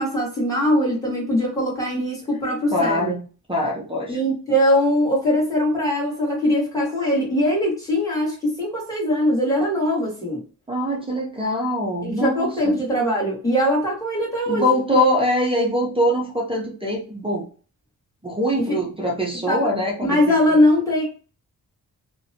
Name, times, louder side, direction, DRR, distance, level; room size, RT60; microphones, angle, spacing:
voice 1, 0.0-3.1 4.1-10.4 12.0-15.0 18.7-18.8 19.5-19.6 20.0-21.0, equal, 10° left, -5 dB, 1.2 m, -21 dB
voice 2, 2.7-3.2 3.5-4.2 10.7-12.8 14.5-17.5 18.2-20.6, left 1 dB, 15° right, -2 dB, 0.5 m, -23 dB
2.6 x 2.1 x 2.6 m, 0.40 s
wide cardioid pair, 170°, 33 cm